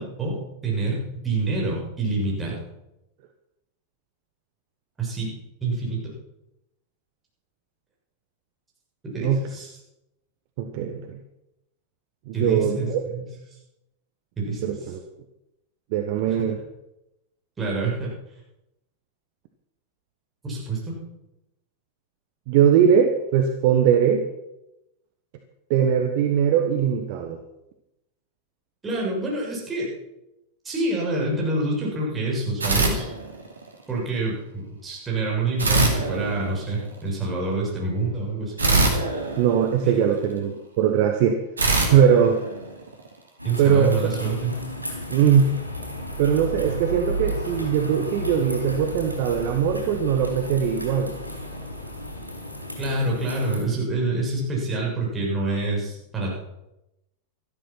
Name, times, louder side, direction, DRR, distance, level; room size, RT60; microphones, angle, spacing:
voice 1, 0.0-2.6 5.0-5.4 5.6-6.1 9.0-9.8 12.3-13.3 14.4-14.8 16.3-16.4 17.6-18.1 20.4-21.0 28.8-29.9 30.6-33.1 33.9-38.5 39.8-39.9 43.4-44.6 52.8-56.4, right 2 dB, 15° right, -3 dB, 6.9 m, -27 dB
voice 2, 10.6-11.2 12.3-13.0 14.6-15.0 15.9-16.6 22.5-24.2 25.7-27.4 39.4-41.4 41.9-42.4 43.6-44.0 45.1-45.5 46.2-51.1, right 8 dB, 50° right, 5 dB, 1.3 m, -20 dB
sound 1, 32.6-33.7 35.6-37.0 38.6-40.3 41.6-43.1, right 2 dB, 75° right, 2.6 m, -24 dB
sound 2, 43.4-53.6, equal, 90° left, 3.7 m, -33 dB
13.5 x 12.5 x 6.0 m, 0.89 s
figure-of-eight pair, 90°, 0 cm